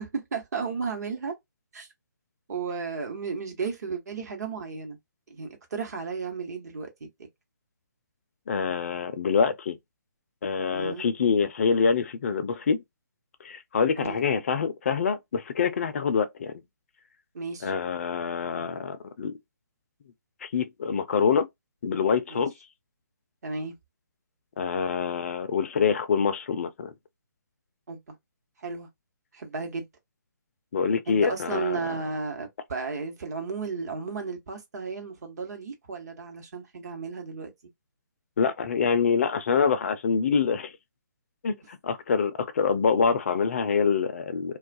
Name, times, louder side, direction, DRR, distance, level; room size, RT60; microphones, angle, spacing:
voice 1, 0.0-1.3 1.7-1.9 2.5-5.0 5.3-7.3 10.7-11.1 14.0-14.2 17.3-17.7 22.3-22.5 23.4-23.7 27.9-28.2 28.6-28.9 29.3-29.9 31.1-37.5, right 4 dB, 55° right, 1.0 m, -34 dB
voice 2, 8.5-9.8 10.4-12.8 13.4-16.5 17.6-19.4 20.4-21.5 21.8-22.5 24.6-26.9 30.7-31.8 38.4-40.7 41.4-44.6, left 6 dB, 40° left, 0.4 m, -25 dB
2.3 x 2.2 x 2.5 m
figure-of-eight pair, 140°, 11 cm